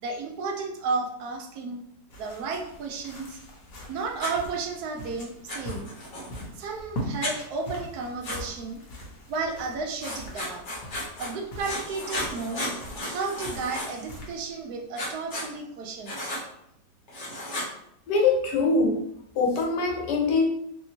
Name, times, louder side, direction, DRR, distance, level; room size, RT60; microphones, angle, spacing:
voice 1, 0.0-1.8 2.2-3.4 3.9-5.9 6.6-8.8 9.3-10.7 11.2-12.6 13.0-16.3, right 4 dB, 75° right, 2 dB, 1.0 m, -33 dB
sound 1, 2.1-14.9, equal, 60° left, 1.2 m, -42 dB
Writing, 4.2-4.3 5.5-6.4 7.2-7.3 8.2-8.4 10.0-11.3 11.6-14.1 14.9-15.5 16.0-16.4 17.1-17.7, left 1 dB, 40° left, 0.8 m, -34 dB
voice 2, 18.1-19.0 19.3-20.5, left 3 dB, 85° left, -1 dB, 1.4 m, -23 dB
3.4 x 2.8 x 2.8 m, 0.76 s
omnidirectional pair, 1.8 m